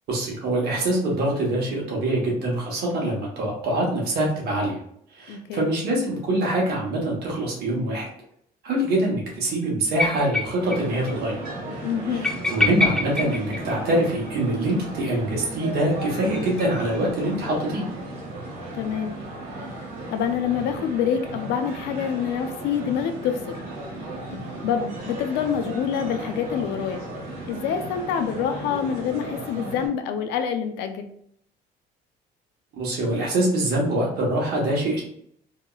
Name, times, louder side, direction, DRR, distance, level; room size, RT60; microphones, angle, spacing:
voice 1, 0.1-4.8 5.1-8.1 8.6-11.4 12.1-17.8 32.7-35.0, right 1 dB, 70° right, -2 dB, 1.1 m, -24 dB
voice 2, 5.3-5.7 11.8-12.3 18.7-19.2 20.1-23.6 24.3-27.0 27.5-31.1, left 8 dB, 80° left, 7 dB, 0.4 m, -26 dB
sound 1, 10.0-10.8 11.1-11.2 11.4-11.5 12.2-14.3 15.8-17.0, left 2 dB, 5° left, 0.3 m, -26 dB
sound 2, 10.6-29.9, right 2 dB, 85° right, 1.3 m, -35 dB
2.9 x 2.7 x 2.3 m, 0.68 s
cardioid pair, 110°, 17 cm